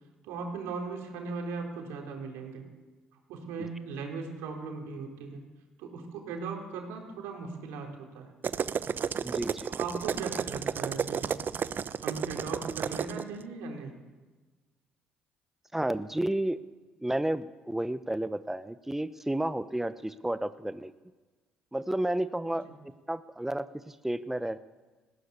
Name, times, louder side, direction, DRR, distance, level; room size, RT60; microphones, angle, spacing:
voice 1, 0.2-2.6 3.3-5.4 5.8-8.3 9.7-11.7 12.0-13.9, right 4 dB, 75° right, 2 dB, 4.1 m, -38 dB
sound 1, 8.4-13.2, right 7 dB, 50° right, 0.8 m, -32 dB
voice 2, 9.2-9.7 15.7-16.6 17.0-20.9 21.7-24.6, right 1 dB, 10° right, 13 dB, 0.8 m, -32 dB
19.5 x 16.5 x 8.3 m, 1.3 s
hypercardioid pair, 55°, 4 cm